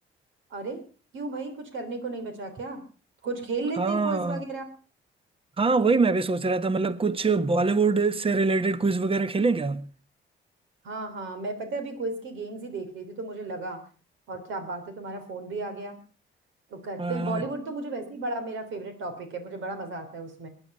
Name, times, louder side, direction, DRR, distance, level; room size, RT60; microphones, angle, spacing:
voice 1, 0.5-0.8 1.1-2.8 3.2-4.7 10.8-13.8 14.3-16.0 16.7-20.5, right 3 dB, 75° right, 3.6 m, -34 dB
voice 2, 3.8-4.4 5.6-9.9 17.0-17.4, right 3 dB, 30° right, 1.1 m, -24 dB
21.0 x 9.9 x 5.5 m
cardioid pair, 90°, 20 cm